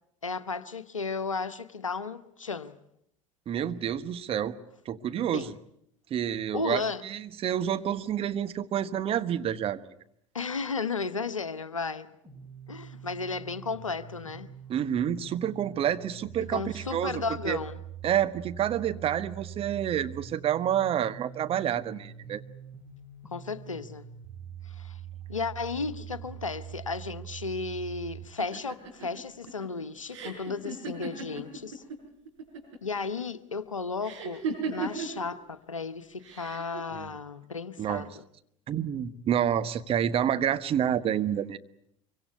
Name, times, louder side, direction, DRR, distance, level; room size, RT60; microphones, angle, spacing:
voice 1, 0.2-2.8 5.3-5.5 6.5-7.0 10.3-12.1 12.7-14.5 16.5-17.8 23.3-24.1 24.6-25.0 25.3-31.8 32.8-34.4 34.7-38.1, left 4 dB, 80° left, 1.0 m, -34 dB
voice 2, 3.5-4.6 4.8-5.5 6.1-9.8 14.7-17.6 18.0-22.4 36.9-37.1 37.8-38.0 38.7-41.6, right 10 dB, 35° right, 1.2 m, -28 dB
sound 1, 12.2-28.2, right 9 dB, 10° right, 6.5 m, -44 dB
sound 2, 28.4-32.0 32.2-32.9 34.0-35.2 36.2-36.8, right 4 dB, 70° right, 7.0 m, -36 dB
24.5 x 24.0 x 8.2 m
figure-of-eight pair, 70°, 16 cm